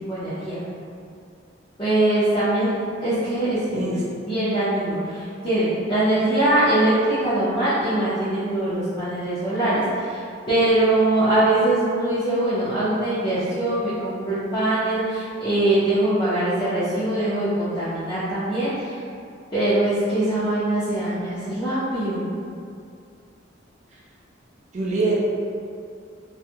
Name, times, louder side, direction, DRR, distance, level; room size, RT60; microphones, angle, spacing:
voice 1, 0.1-0.6 1.8-4.0 4.3-6.9 7.2-19.0 19.5-22.2, right 1 dB, 25° left, -15 dB, 0.7 m, -22 dB
voice 2, 24.7-25.2, right 3 dB, 40° right, -4 dB, 0.4 m, -24 dB
2.6 x 2.3 x 2.8 m, 2.4 s
head